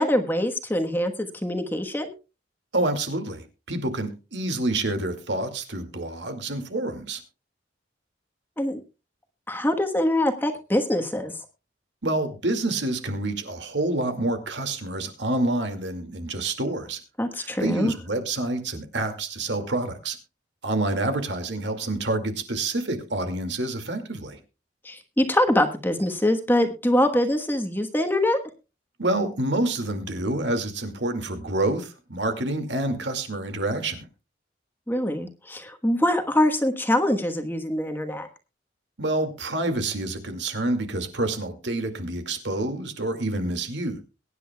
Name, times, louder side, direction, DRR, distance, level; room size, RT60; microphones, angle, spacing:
voice 1, 0.0-2.1 8.6-8.8 9.5-11.3 17.2-17.9 24.8-28.4 34.9-38.3, left 1 dB, 10° left, 6 dB, 1.2 m, -24 dB
voice 2, 2.7-7.2 12.0-17.0 17.4-20.2 20.6-24.4 29.0-34.1 39.0-44.0, right 2 dB, 75° right, 6 dB, 2.2 m, -28 dB
22.5 x 10.0 x 2.3 m, 0.30 s
head